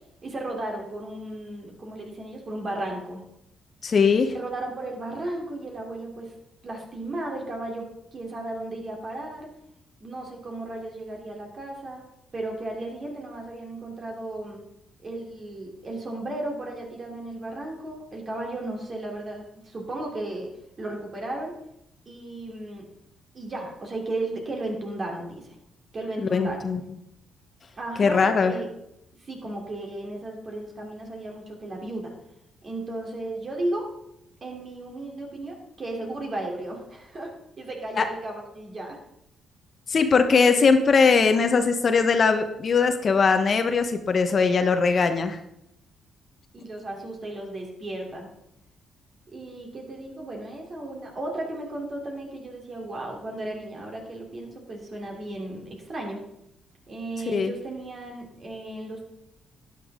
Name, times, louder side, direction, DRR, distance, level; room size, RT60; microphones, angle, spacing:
voice 1, 0.2-3.2 4.3-6.3 6.6-9.5 10.0-12.0 12.3-14.6 15.0-20.5 20.8-21.5 22.0-22.8 23.3-25.5 25.9-26.7 27.8-28.7 29.2-32.1 32.6-33.9 34.4-39.0 40.3-40.6 46.5-48.3 49.3-56.2 56.9-59.0, right 2 dB, 40° right, 0 dB, 3.2 m, -35 dB
voice 2, 3.8-4.3 26.2-26.8 28.0-28.5 38.0-38.1 39.9-45.4 57.3-57.5, left 5 dB, 45° left, 8 dB, 1.0 m, -20 dB
12.5 x 10.0 x 3.7 m, 0.81 s
cardioid pair, 90°, 0 cm